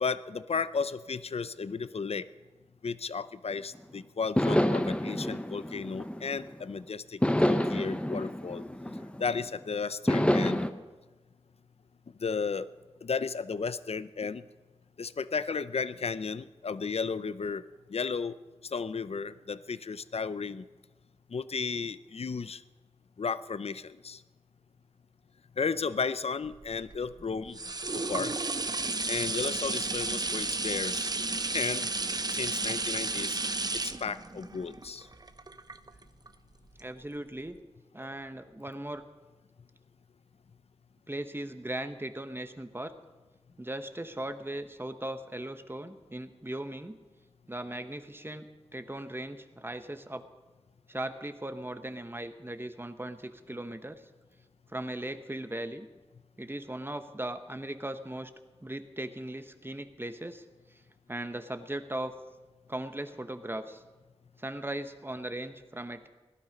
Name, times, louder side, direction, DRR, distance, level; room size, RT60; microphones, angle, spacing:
voice 1, 0.0-2.3 2.8-8.6 9.2-10.7 12.2-12.7 13.0-14.4 15.0-18.3 18.6-20.7 21.3-22.6 23.2-24.2 25.6-27.6 27.9-28.3 29.1-31.1 31.5-31.9 32.3-33.4 33.7-35.1, left 5 dB, 70° left, 15 dB, 0.5 m, -34 dB
sound 1, 3.8-3.9 4.4-6.6 7.2-9.5 10.1-10.7, left 1 dB, 10° left, 0.8 m, -28 dB
sound 2, 26.5-36.3 36.8-36.9, right 3 dB, 40° right, 0.6 m, -33 dB
voice 2, 36.8-37.6 37.9-39.0 41.1-42.9 43.6-47.0 47.5-48.5 48.7-50.2 50.9-54.0 54.7-55.9 56.4-58.3 58.6-60.4 61.1-62.1 62.7-63.8 64.4-66.1, right 1 dB, 20° right, 9 dB, 1.0 m, -38 dB
17.0 x 12.0 x 5.3 m, 1.2 s
wide cardioid pair, 55°, 11 cm